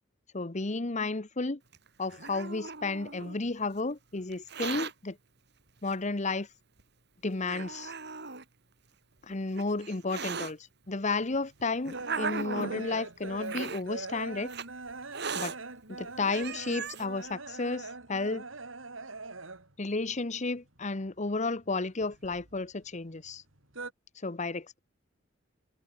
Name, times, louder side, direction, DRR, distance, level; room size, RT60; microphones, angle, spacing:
voice 1, 0.3-1.6 2.0-5.2 5.8-6.5 7.2-7.9 9.2-14.5 15.3-15.6 15.9-18.4 19.8-23.4 24.2-24.8, left 3 dB, 35° left, 1.0 m, -32 dB
Hiss, 1.7-3.4 4.3-4.9 5.9-6.0 6.8-6.9 7.4-8.4 9.3-10.5 11.3-12.9 13.4-13.8 14.5-14.7 15.1-15.5 16.0-16.1 16.3-17.0, right 5 dB, 55° right, 4.0 m, -37 dB
sound 1, 11.0-19.8 20.1-21.3 21.6-23.0 23.2-23.9, right 3 dB, 80° right, 4.1 m, -42 dB
head